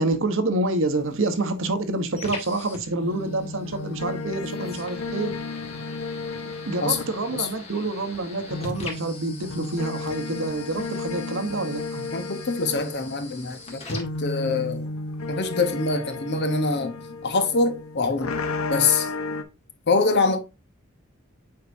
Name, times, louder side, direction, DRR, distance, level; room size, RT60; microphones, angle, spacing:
voice 1, 0.0-5.3 6.4-12.1, right 2 dB, 65° right, 1.1 m, -27 dB
sound 1, 0.9-14.9, left 2 dB, 30° left, 1.8 m, -42 dB
sound 2, 3.0-8.2 8.5-19.4, left 3 dB, 80° left, 0.9 m, -34 dB
voice 2, 6.8-7.5 12.1-14.9 15.3-18.3 18.7-19.1 19.9-20.4, left 3 dB, 55° left, 1.1 m, -24 dB
7.7 x 4.8 x 2.7 m
head